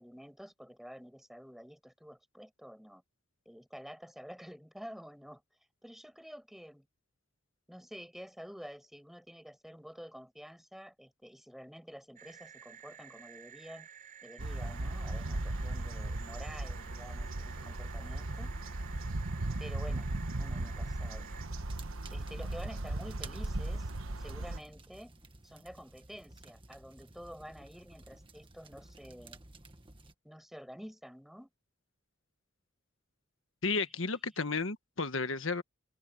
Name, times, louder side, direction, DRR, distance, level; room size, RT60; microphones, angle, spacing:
voice 1, 0.0-3.0 3.5-5.4 5.8-6.9 7.7-13.9 14.2-18.5 19.6-20.1 20.4-21.3 22.1-23.9 24.2-25.1 25.4-29.4 30.2-31.5, equal, ahead, 7.3 m, -49 dB
sound 1, 12.2-21.5, right 8 dB, 40° right, 5.9 m, -53 dB
sound 2, 14.4-24.6, right 2 dB, 85° right, 1.3 m, -37 dB
sound 3, 21.7-30.1, right 3 dB, 25° right, 1.6 m, -54 dB
voice 2, 33.6-35.6, left 4 dB, 70° left, 1.6 m, -33 dB
head